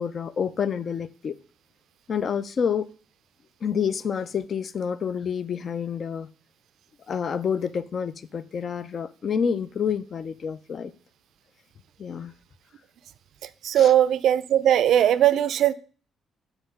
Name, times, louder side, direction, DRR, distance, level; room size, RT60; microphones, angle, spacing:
voice 1, 0.0-1.3 2.1-2.9 3.6-6.3 7.1-10.9 12.0-12.3 13.7-13.9, left 7 dB, 50° left, 15 dB, 0.4 m, -28 dB
voice 2, 13.4-15.7, right 11 dB, 75° right, 16 dB, 0.3 m, -20 dB
5.7 x 3.5 x 5.2 m, 0.41 s
cardioid pair, 90°, 0 cm